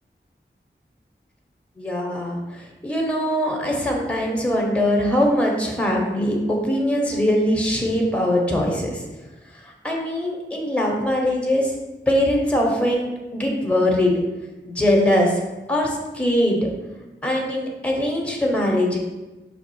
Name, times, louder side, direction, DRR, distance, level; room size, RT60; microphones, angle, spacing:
voice 1, 1.8-9.1 9.6-11.7 12.1-14.1 14.6-15.4 15.7-16.7 17.2-19.0, left 1 dB, 5° left, -1 dB, 0.9 m, -22 dB
5.4 x 2.3 x 4.3 m, 1.1 s
wide cardioid pair, 40°, 20 cm